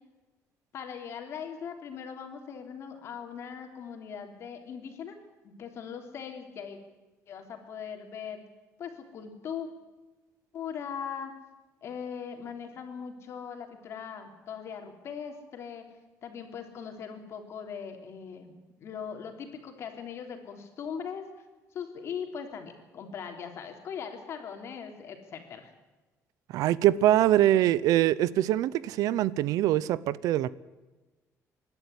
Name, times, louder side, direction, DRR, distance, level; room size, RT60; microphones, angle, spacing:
voice 1, 0.7-5.2 5.4-6.8 7.3-8.4 8.8-9.7 10.5-11.3 11.8-15.8 16.2-18.5 18.8-21.3 21.7-25.7, left 7 dB, 50° left, 3.4 m, -40 dB
voice 2, 26.5-30.6, right 13 dB, 75° right, 0.7 m, -23 dB
25.5 x 12.0 x 9.7 m
cardioid pair, 165°, 6 cm